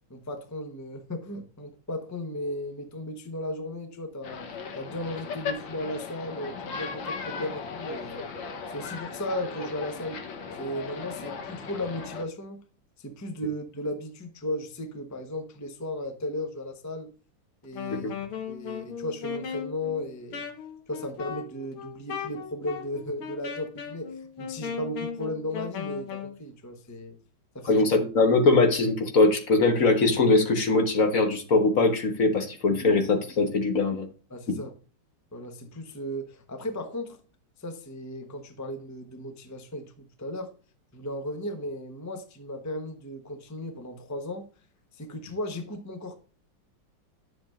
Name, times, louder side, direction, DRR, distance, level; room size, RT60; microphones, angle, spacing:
voice 1, 0.1-4.4 4.7-8.2 8.7-10.2 10.6-12.6 13.0-17.1 17.6-18.1 18.5-20.5 20.9-27.2 27.5-27.9 34.3-34.7 35.3-37.2 37.6-40.5 40.9-44.5 44.9-46.2, left 1 dB, 25° left, 0.3 m, -35 dB
sound 1, 4.2-12.2, left 5 dB, 65° left, 1.7 m, -37 dB
Wind instrument woodwind instrument, 17.6-26.4, left 7 dB, 80° left, 2.2 m, -37 dB
voice 2, 27.6-34.1 34.5-34.6, left 3 dB, 45° left, 1.4 m, -22 dB
10.5 x 7.1 x 2.5 m
omnidirectional pair, 2.4 m